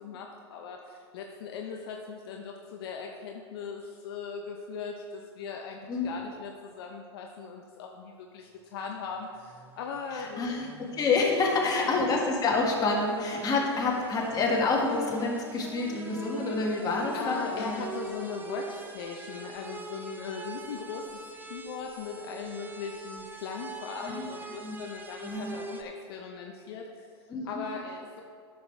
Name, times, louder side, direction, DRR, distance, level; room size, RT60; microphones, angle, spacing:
voice 1, 0.0-10.5 11.4-11.9 13.6-13.7 17.1-28.2, left 5 dB, 60° left, 2 dB, 0.7 m, -39 dB
sound 1, 9.1-25.8, right 3 dB, 15° right, 0.7 m, -44 dB
voice 2, 10.1-10.7 11.0-17.9 24.0-24.8 25.2-25.5 27.3-27.7, left 3 dB, 30° left, -2 dB, 1.9 m, -28 dB
10.0 x 6.6 x 3.4 m, 2.2 s
hypercardioid pair, 95°, 14 cm